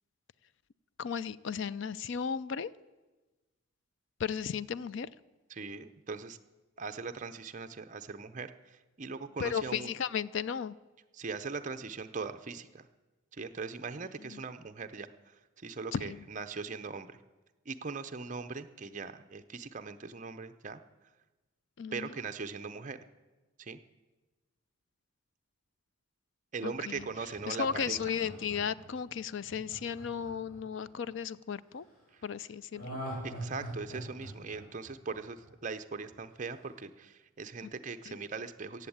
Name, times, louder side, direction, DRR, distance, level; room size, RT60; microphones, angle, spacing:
voice 1, 1.0-2.7 4.2-5.1 9.4-10.8 14.2-14.4 15.9-16.3 21.8-22.1 26.6-27.1 27.5-31.9 32.2-33.0 38.1-38.2, left 7 dB, 60° left, 18 dB, 0.4 m, -35 dB
voice 2, 5.5-6.4 6.8-9.9 11.1-12.9 13.3-17.2 17.7-20.8 21.9-23.1 23.6-23.8 26.5-28.0 33.2-38.9, right 4 dB, 35° right, 9 dB, 0.6 m, -40 dB
Laughter, 26.9-31.1 32.7-35.7 36.1-36.2, right 1 dB, 40° left, 6.6 m, -43 dB
15.0 x 8.0 x 8.6 m, 1.2 s
head